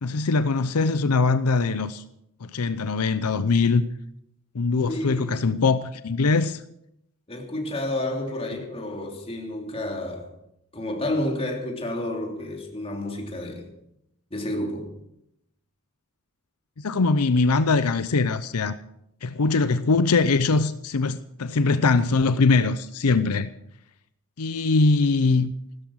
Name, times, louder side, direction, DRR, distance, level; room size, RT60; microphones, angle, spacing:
voice 1, 0.0-2.0 2.4-3.8 4.5-6.6 16.8-18.8 19.2-23.5 24.4-25.5, left 3 dB, 85° left, 0.7 m, -22 dB
voice 2, 4.9-5.2 7.3-10.3 10.7-13.7 14.3-14.9, left 1 dB, 25° left, 3.1 m, -30 dB
16.0 x 13.0 x 6.4 m
head